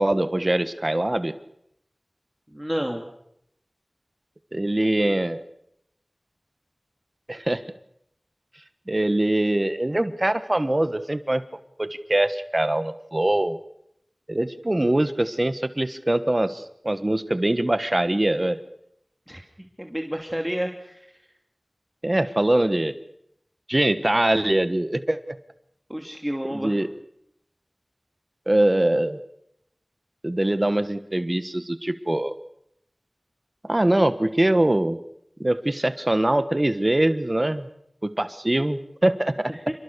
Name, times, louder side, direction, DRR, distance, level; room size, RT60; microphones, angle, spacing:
voice 1, 0.0-1.3 4.5-5.4 7.3-7.6 8.9-11.4 11.8-13.6 14.3-18.6 22.0-22.9 23.7-25.2 26.5-26.9 28.5-29.2 30.2-32.3 33.6-35.0 35.4-37.7 38.0-39.5, right 1 dB, 40° right, 11 dB, 1.3 m, -23 dB
voice 2, 2.5-3.0 19.3-19.4 19.8-21.2 25.9-26.8 39.5-39.7, equal, 10° right, 3 dB, 2.6 m, -30 dB
28.0 x 21.0 x 6.8 m, 0.76 s
wide cardioid pair, 40°, 0 cm